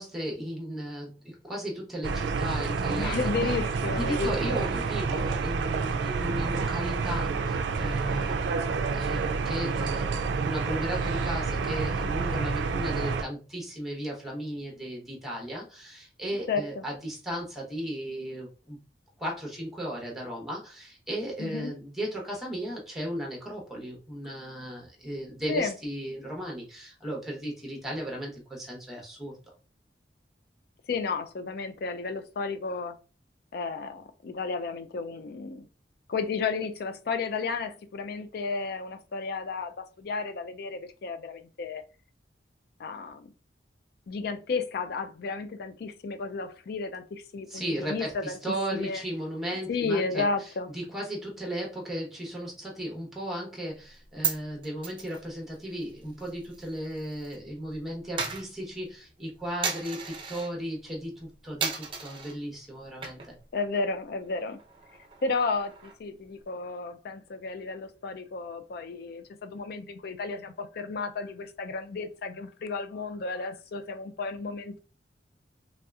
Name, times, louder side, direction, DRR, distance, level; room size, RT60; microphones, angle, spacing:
voice 1, 0.0-3.3 4.0-18.8 19.2-29.4 47.5-50.3 50.7-63.3, equal, ahead, 0.9 m, -35 dB
sound 1, 2.0-13.2, right 4 dB, 80° right, 0.3 m, -29 dB
voice 2, 3.0-4.6 16.5-16.8 21.4-21.7 25.5-25.8 30.9-33.0 33.5-35.7 36.1-41.8 42.8-43.3 44.1-48.4 48.7-49.0 49.7-50.7 63.5-64.6 65.2-74.8, left 4 dB, 60° left, 0.4 m, -33 dB
Coin (dropping), 53.8-57.4 57.6-60.5 60.9-61.2 61.6-62.4 62.8-63.5 63.8-63.9 64.2-66.1, right 6 dB, 30° right, 0.5 m, -36 dB
3.1 x 2.8 x 2.3 m
head